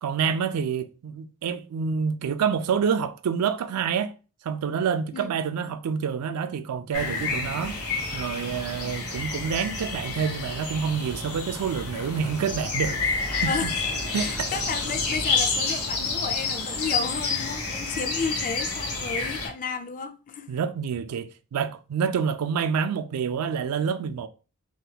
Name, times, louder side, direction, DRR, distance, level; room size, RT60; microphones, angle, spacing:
voice 1, 0.0-4.1 4.4-7.8 8.1-13.7 14.1-14.5 20.5-24.3, right 6 dB, 90° right, 0.3 m, -27 dB
sound 1, 6.9-19.5, left 3 dB, 80° left, 1.4 m, -29 dB
voice 2, 14.1-20.5, left 5 dB, 35° left, 0.4 m, -32 dB
3.4 x 2.8 x 2.3 m
head